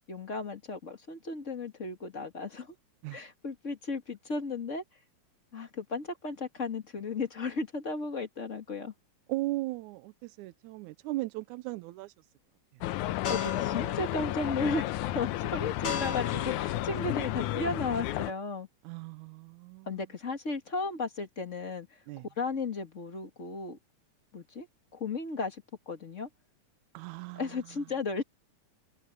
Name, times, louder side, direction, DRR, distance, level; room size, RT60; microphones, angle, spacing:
voice 1, 0.1-2.7 3.1-4.8 5.5-8.9 13.3-18.7 19.9-22.0 22.4-23.8 24.3-24.7 24.9-26.3 27.4-28.2, left 3 dB, 30° left, 2.0 m, -35 dB
voice 2, 9.3-12.1 18.8-20.0 22.1-22.3 26.9-27.8, right 19 dB, 90° right, 2.0 m, -37 dB
sound 1, 12.8-18.3, left 15 dB, 85° left, 2.2 m, -32 dB
sound 2, 13.2-18.3, left 7 dB, 45° left, 2.3 m, -39 dB
omnidirectional pair, 3.4 m